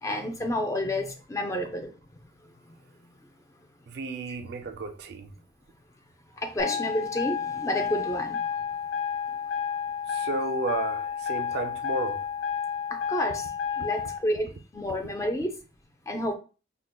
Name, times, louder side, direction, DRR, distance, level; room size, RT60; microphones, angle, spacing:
voice 1, 0.0-1.9 4.3-4.4 6.4-8.5 12.9-13.5 13.8-15.5 16.1-16.3, left 1 dB, 15° left, 0.4 m, -30 dB
voice 2, 3.9-5.3 10.1-12.2, right 3 dB, 55° right, 0.4 m, -33 dB
sound 1, 6.6-14.2, left 7 dB, 70° left, 0.6 m, -31 dB
4.7 x 2.1 x 2.2 m
head